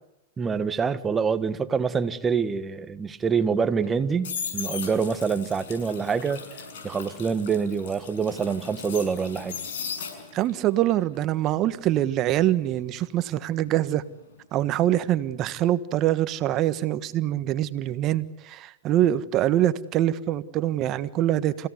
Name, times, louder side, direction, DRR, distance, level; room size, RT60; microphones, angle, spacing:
voice 1, 0.4-6.4 6.8-9.6, right 6 dB, 20° right, 11 dB, 1.6 m, -26 dB
sound 1, 3.8-10.6 10.9-13.8 14.1-14.4, left 6 dB, 75° left, 6.6 m, -37 dB
voice 2, 10.3-14.0 14.5-21.7, right 13 dB, 40° right, 13 dB, 1.4 m, -24 dB
28.5 x 17.0 x 9.7 m, 0.92 s
hypercardioid pair, 115°, 0 cm